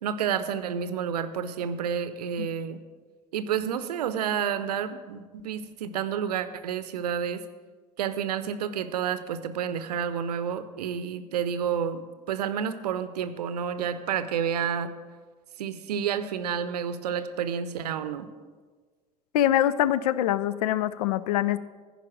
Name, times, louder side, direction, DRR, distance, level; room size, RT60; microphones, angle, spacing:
voice 1, 0.0-2.8 3.3-7.4 8.0-14.9 15.6-18.3, right 8 dB, 70° right, 12 dB, 0.7 m, -30 dB
voice 2, 19.3-21.6, left 12 dB, 65° left, 17 dB, 0.4 m, -24 dB
15.0 x 5.4 x 6.1 m, 1.5 s
figure-of-eight pair, 60°, 21 cm